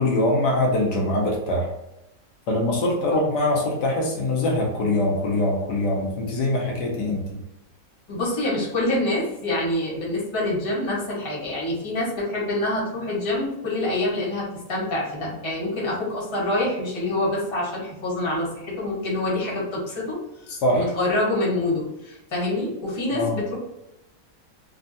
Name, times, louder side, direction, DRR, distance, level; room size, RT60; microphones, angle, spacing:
voice 1, 0.0-1.7 2.5-7.4 20.6-20.9 23.1-23.4, left 1 dB, 80° left, -1 dB, 1.4 m, -23 dB
voice 2, 8.1-20.2 20.7-23.5, left 1 dB, 20° left, -6 dB, 0.9 m, -26 dB
3.5 x 2.2 x 2.6 m, 0.90 s
omnidirectional pair, 1.8 m